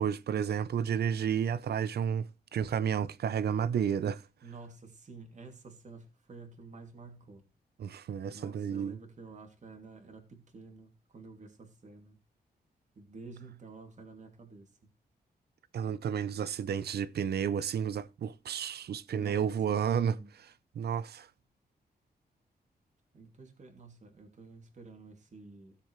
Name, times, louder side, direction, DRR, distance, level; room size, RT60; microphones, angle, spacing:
voice 1, 0.0-2.2 2.5-4.2 7.8-8.9 15.7-20.1 20.7-21.3, right 8 dB, 75° right, 0.7 m, -31 dB
voice 2, 4.4-7.4 8.3-12.2 12.9-14.8 19.1-20.3 23.1-25.8, right 3 dB, 45° right, 2.6 m, -50 dB
16.5 x 7.0 x 3.1 m
wide cardioid pair, 125°, 17 cm